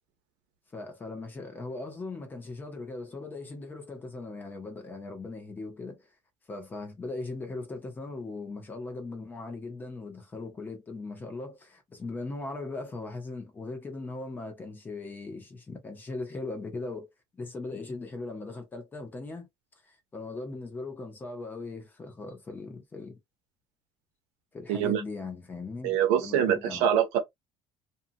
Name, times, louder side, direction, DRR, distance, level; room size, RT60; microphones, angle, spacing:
voice 1, 0.7-6.1 6.5-17.1 17.4-19.5 19.8-23.2 24.5-26.9, left 3 dB, 15° left, 0.7 m, -39 dB
voice 2, 24.7-25.0 25.8-27.2, right 9 dB, 90° right, 0.8 m, -24 dB
2.7 x 2.5 x 2.5 m
cardioid pair, 170°, 11 cm